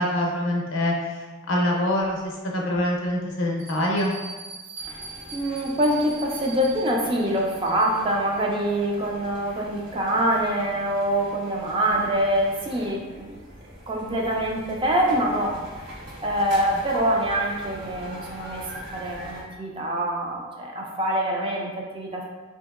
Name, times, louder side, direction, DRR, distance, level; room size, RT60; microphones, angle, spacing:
voice 1, 0.0-4.1, left 1 dB, 75° left, -1 dB, 0.6 m, -25 dB
Bell, 3.6-8.2, right 4 dB, 80° right, 1.4 m, -42 dB
sound 1, 4.8-19.4, equal, 60° right, 0.9 m, -42 dB
voice 2, 5.3-13.4 13.9-15.6 16.2-22.2, right 1 dB, 25° right, -1 dB, 0.3 m, -25 dB
2.8 x 2.7 x 2.4 m, 1.3 s
head